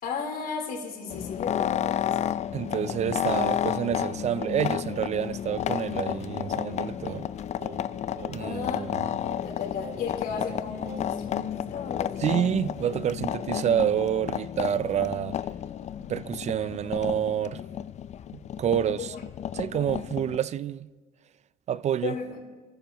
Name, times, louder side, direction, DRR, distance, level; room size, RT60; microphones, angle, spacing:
voice 1, 0.0-2.3 8.4-8.9 9.4-12.2 19.0-19.1 22.0-22.3, left 6 dB, 65° left, 3.7 m, -34 dB
sound 1, 1.1-20.4, left 10 dB, 45° left, 0.4 m, -32 dB
voice 2, 2.5-7.3 8.3-9.0 12.2-15.4 16.1-17.6 18.3-19.1 19.5-20.9 21.7-22.2, right 9 dB, 40° right, 0.4 m, -28 dB
Singing, 2.7-11.3, right 3 dB, 70° right, 2.3 m, -46 dB
28.5 x 14.0 x 3.0 m
cardioid pair, 110°, 17 cm